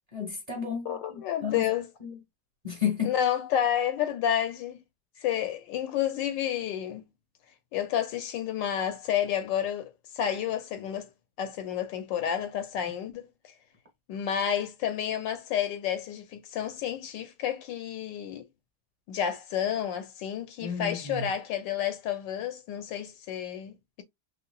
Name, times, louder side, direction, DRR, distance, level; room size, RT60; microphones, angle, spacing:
voice 1, 0.1-1.7 2.0-2.2 2.6-3.1 20.6-21.3, left 7 dB, 20° right, 1.1 m, -32 dB
voice 2, 0.9-1.9 3.0-4.8 5.2-7.1 7.7-11.1 11.4-13.2 14.1-18.4 19.1-24.0, left 9 dB, 75° left, 1.2 m, -30 dB
5.5 x 2.1 x 2.3 m
omnidirectional pair, 2.2 m